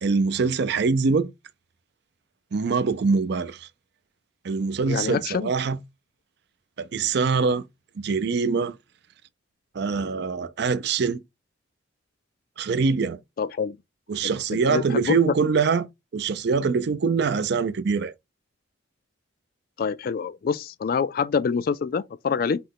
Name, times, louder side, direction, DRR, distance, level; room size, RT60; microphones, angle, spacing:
voice 1, 0.0-1.3 2.5-3.7 4.4-5.8 6.8-7.6 8.0-8.8 9.7-11.2 12.6-13.2 14.1-15.9 16.1-18.1, right 5 dB, 55° right, 0.4 m, -24 dB
voice 2, 4.8-5.5 13.4-13.8 14.2-15.2 19.8-22.6, left 6 dB, 45° left, 0.3 m, -26 dB
5.5 x 2.2 x 3.7 m
head